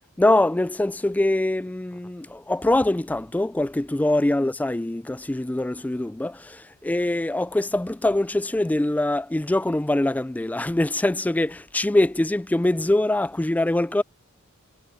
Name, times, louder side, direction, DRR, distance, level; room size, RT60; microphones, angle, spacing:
voice 1, 0.2-14.0, left 1 dB, 5° left, 0.3 m, -23 dB
head